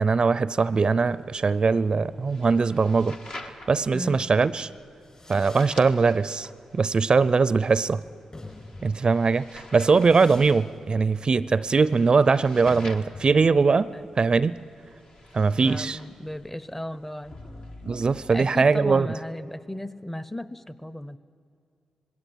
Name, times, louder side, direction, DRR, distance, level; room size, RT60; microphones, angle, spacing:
voice 1, 0.0-4.7 5.3-8.0 8.8-13.9 14.2-14.6 15.3-16.0 17.9-19.1, right 4 dB, 45° right, 18 dB, 0.5 m, -21 dB
sound 1, 1.0-18.4, left 2 dB, 60° left, 1.7 m, -47 dB
Fireworks, 4.8-16.9, left 2 dB, 35° left, 5.9 m, -49 dB
voice 2, 15.5-17.4 18.3-21.2, left 1 dB, 10° left, 16 dB, 0.8 m, -35 dB
20.0 x 17.0 x 9.8 m, 2.5 s
hypercardioid pair, 40°, 2 cm